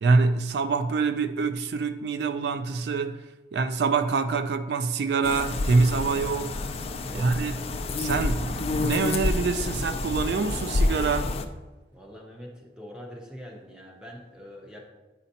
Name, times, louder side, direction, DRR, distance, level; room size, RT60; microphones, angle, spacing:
voice 1, 0.0-3.2 3.5-6.5 7.1-7.6 8.0-11.3, right 4 dB, 70° right, 0.3 m, -25 dB
sound 1, 5.2-11.4, left 2 dB, 35° left, 0.4 m, -28 dB
voice 2, 7.0-7.3 11.9-14.9, equal, 5° right, 0.9 m, -44 dB
9.9 x 4.1 x 2.8 m
head